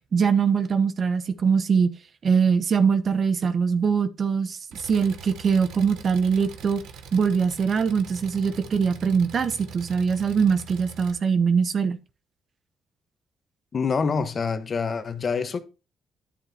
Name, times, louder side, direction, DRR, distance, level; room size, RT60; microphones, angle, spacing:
voice 1, 0.1-1.9 2.2-6.8 7.1-12.0, right 6 dB, 50° right, 0.9 m, -22 dB
Engine, 4.7-11.1, right 6 dB, 85° right, 1.1 m, -43 dB
voice 2, 13.7-15.6, left 5 dB, 45° left, 1.1 m, -26 dB
10.5 x 7.6 x 2.8 m
cardioid pair, 90°, 0 cm